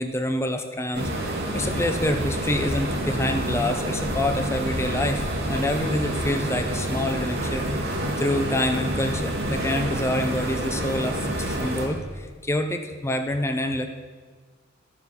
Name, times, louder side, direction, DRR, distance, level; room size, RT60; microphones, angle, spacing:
voice 1, 0.0-7.7 8.2-13.9, left 1 dB, 15° left, 6 dB, 0.6 m, -27 dB
sound 1, 0.9-11.9, right 1 dB, 50° right, 2.2 m, -28 dB
12.5 x 9.3 x 4.2 m, 1.5 s
head